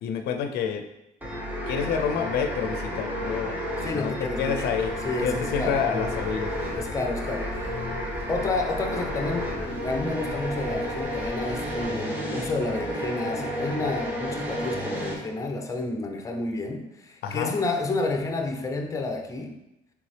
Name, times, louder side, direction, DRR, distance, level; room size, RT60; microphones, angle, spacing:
voice 1, 0.0-0.9 1.7-3.6 3.9-4.9 5.2-6.5 17.2-17.5, left 7 dB, 75° left, 6 dB, 0.4 m, -28 dB
sound 1, 1.2-15.2, equal, 10° right, 0.9 m, -32 dB
voice 2, 3.8-4.6 5.0-5.8 6.7-7.8 8.3-19.6, left 3 dB, 20° left, 4 dB, 0.5 m, -30 dB
sound 2, 4.8-12.0, left 2 dB, 40° right, 1.4 m, -40 dB
4.0 x 3.4 x 3.2 m, 0.90 s
cardioid pair, 110°, 17 cm